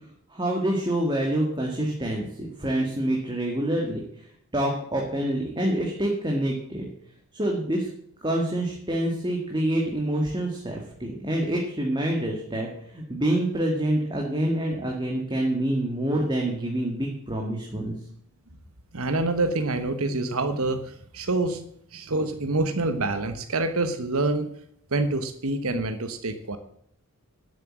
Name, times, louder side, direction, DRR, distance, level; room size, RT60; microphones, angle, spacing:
voice 1, 0.3-4.0 4.5-6.9 7.3-7.9 8.2-12.7 12.9-17.9, right 1 dB, 20° right, 0 dB, 2.0 m, -26 dB
voice 2, 18.9-21.6 21.9-24.5 24.9-26.6, right 2 dB, 75° right, 8 dB, 1.2 m, -26 dB
12.0 x 7.8 x 7.5 m, 0.71 s
head